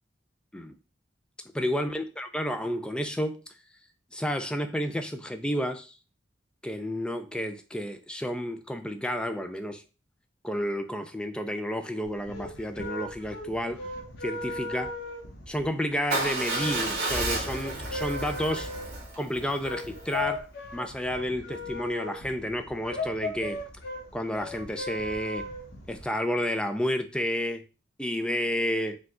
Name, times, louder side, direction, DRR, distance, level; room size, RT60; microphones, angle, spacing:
voice 1, 1.5-3.4 4.1-6.0 6.6-9.8 10.4-13.8 14.2-14.9 15.5-18.7 19.2-20.5 20.7-23.6 24.1-25.5 25.9-27.6 28.0-29.0, equal, 5° left, 7 dB, 0.4 m, -31 dB
sound 1, 12.1-26.0, left 2 dB, 60° left, 0.9 m, -38 dB
Motorcycle / Engine starting / Idling, 16.1-20.2, right 2 dB, 55° right, 1.6 m, -32 dB
4.7 x 2.4 x 3.7 m, 0.32 s
head